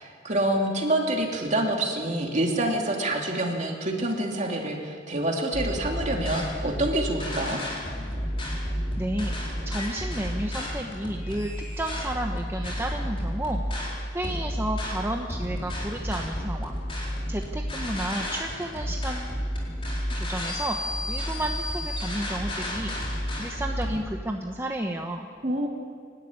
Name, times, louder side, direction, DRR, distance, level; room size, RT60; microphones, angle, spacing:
voice 1, 0.0-7.6 25.4-25.7, right 1 dB, 40° right, 1 dB, 3.0 m, -27 dB
sound 1, 5.5-24.0, equal, 30° left, 4.4 m, -31 dB
voice 2, 8.9-9.3 9.7-13.6 14.1-16.7 17.3-19.3 20.1-20.8 21.1-22.9 23.4-25.3, right 1 dB, 15° right, 2 dB, 1.0 m, -32 dB
25.0 x 12.5 x 9.6 m, 2.2 s
head